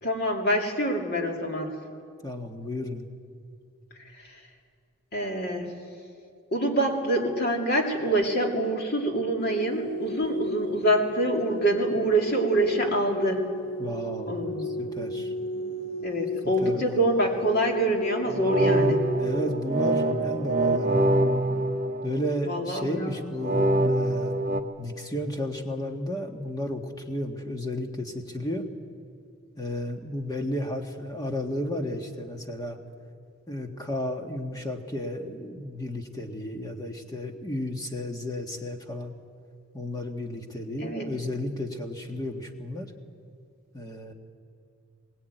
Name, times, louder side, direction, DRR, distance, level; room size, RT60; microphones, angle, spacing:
voice 1, 0.0-1.7 5.1-5.7 6.5-13.4 14.3-14.7 16.0-19.0 22.5-23.3 40.8-41.1, right 1 dB, 45° left, 1 dB, 2.8 m, -26 dB
voice 2, 2.2-3.1 13.8-15.3 16.6-17.0 19.2-21.0 22.0-24.4 24.8-28.7 29.6-32.8 33.5-39.2 39.7-42.9 43.7-44.1, left 1 dB, 15° left, 3 dB, 1.6 m, -33 dB
sound 1, 9.4-19.6, left 2 dB, 85° left, 1.5 m, -34 dB
sound 2, 18.2-22.6 23.4-24.6, right 1 dB, 35° right, 1.2 m, -25 dB
22.0 x 19.5 x 9.2 m, 2.3 s
head